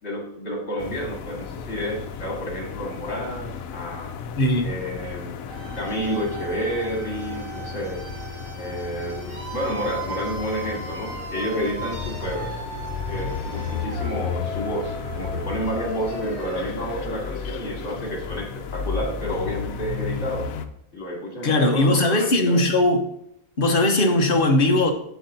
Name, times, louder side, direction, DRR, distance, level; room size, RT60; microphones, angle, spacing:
voice 1, 0.0-4.1 4.6-5.4 5.7-8.0 8.6-12.5 13.1-20.5 20.9-22.7, equal, 65° left, 2.2 m, -30 dB
sound 1, 0.8-20.7, left 5 dB, 80° left, 1.1 m, -34 dB
voice 2, 4.4-4.7 21.4-23.1 23.6-24.9, left 2 dB, 45° left, 1.1 m, -19 dB
sound 2, 5.5-18.3, right 2 dB, 40° right, 1.8 m, -37 dB
8.2 x 7.9 x 2.7 m
omnidirectional pair, 1.4 m